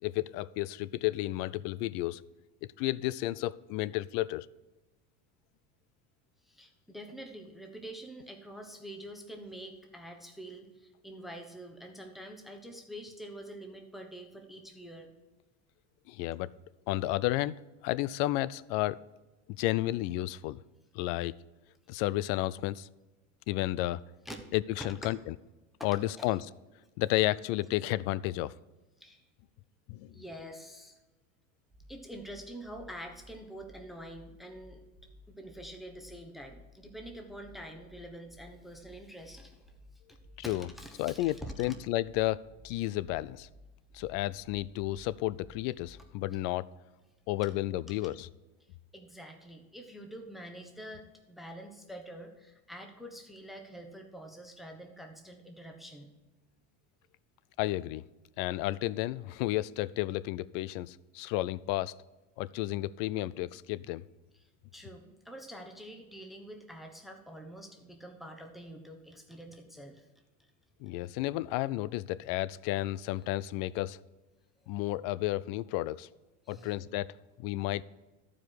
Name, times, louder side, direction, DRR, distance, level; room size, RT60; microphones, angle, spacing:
voice 1, 0.0-2.2 2.8-4.5 16.1-16.5 16.9-17.5 17.8-19.0 19.6-20.6 20.9-21.3 21.9-22.9 23.5-24.0 24.5-25.3 25.8-26.4 27.0-28.5 29.9-30.1 40.4-40.7 41.0-43.5 43.9-46.7 47.3-48.3 57.6-58.0 58.4-61.9 62.4-64.0 70.8-74.0 74.7-76.1 76.5-77.1 77.4-77.8, left 16 dB, 65° left, 0.5 m, -32 dB
voice 2, 6.5-15.1 24.2-24.4 24.8-25.1 25.8-26.4 29.0-29.2 30.1-30.9 31.9-34.8 35.3-39.7 40.4-41.7 48.9-56.1 64.7-70.1 76.4-76.9, right 1 dB, ahead, 1.1 m, -46 dB
sound 1, 31.7-46.2, equal, 30° right, 1.7 m, -56 dB
14.0 x 4.9 x 4.6 m
supercardioid pair, 115°, 39 cm